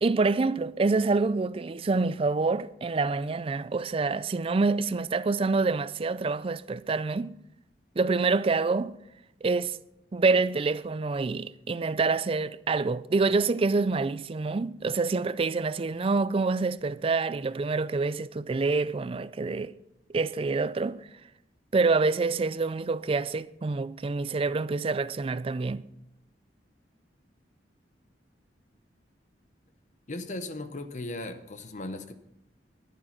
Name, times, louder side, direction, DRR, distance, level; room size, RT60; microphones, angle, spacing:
voice 1, 0.0-7.4 8.0-9.0 9.4-9.8 10.1-19.7 20.1-21.0 21.7-25.9, right 3 dB, 30° right, 0.4 m, -26 dB
voice 2, 30.1-32.1, left 2 dB, 45° left, 0.8 m, -37 dB
11.5 x 10.5 x 5.8 m
head